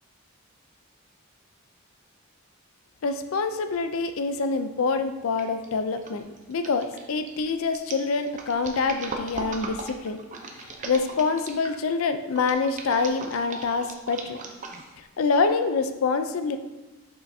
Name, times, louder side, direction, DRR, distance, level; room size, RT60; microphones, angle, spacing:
voice 1, 3.0-10.2 10.6-14.4 15.0-16.6, left 4 dB, 75° left, 9 dB, 0.4 m, -26 dB
sound 1, 5.4-5.7 6.0-11.8 12.4-15.0 15.5-15.6, right 3 dB, 35° right, 0.6 m, -38 dB
6.5 x 5.6 x 2.7 m, 1.1 s
head